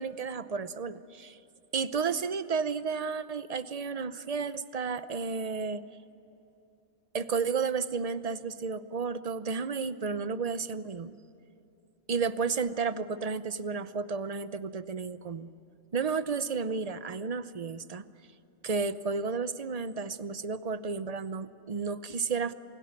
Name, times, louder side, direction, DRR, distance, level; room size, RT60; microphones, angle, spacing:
voice 1, 0.0-1.4 1.7-5.8 7.1-11.2 12.1-15.5 15.9-18.0 18.6-22.5, right 5 dB, 35° right, 13 dB, 0.7 m, -32 dB
27.5 x 18.0 x 9.6 m, 2.9 s
omnidirectional pair, 1.4 m